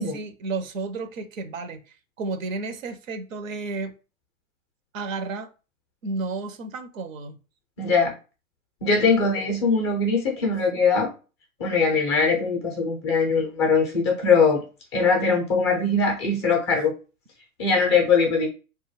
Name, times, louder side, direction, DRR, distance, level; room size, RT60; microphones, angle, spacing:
voice 1, 0.1-3.9 4.9-5.5 6.0-7.4, right 3 dB, 65° right, 0.6 m, -32 dB
voice 2, 7.8-8.1 8.8-11.1 11.6-14.6 14.9-16.9 17.6-18.5, left 4 dB, 20° left, 0.4 m, -21 dB
2.2 x 2.1 x 3.1 m
hypercardioid pair, 115°, 43 cm